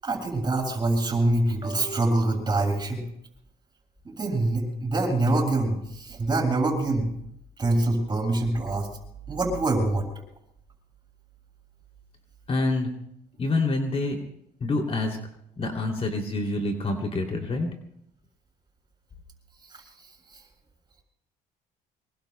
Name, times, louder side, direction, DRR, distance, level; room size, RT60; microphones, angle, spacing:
voice 1, 0.0-3.0 4.1-7.1 7.6-8.9 9.3-10.0, right 2 dB, 25° right, 2 dB, 7.4 m, -25 dB
voice 2, 12.5-12.9 13.4-14.1 14.6-15.2 15.6-17.7, left 2 dB, 35° left, 3 dB, 2.9 m, -26 dB
25.5 x 23.0 x 2.3 m, 0.73 s
cardioid pair, 110°, 17 cm